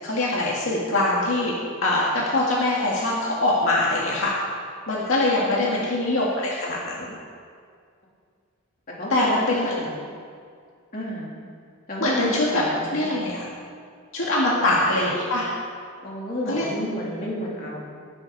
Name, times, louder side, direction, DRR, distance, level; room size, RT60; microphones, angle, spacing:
voice 1, 0.0-4.5 4.9-7.1 9.1-9.7 12.0-12.6 12.9-13.5 14.1-15.5 16.5-16.7, left 2 dB, 65° left, -4 dB, 2.1 m, -23 dB
voice 2, 5.6-5.9 8.9-9.9 10.9-11.3 11.9-13.1 14.4-15.0 16.0-17.8, equal, 40° left, -5 dB, 3.5 m, -31 dB
19.5 x 11.5 x 4.2 m, 2.1 s
head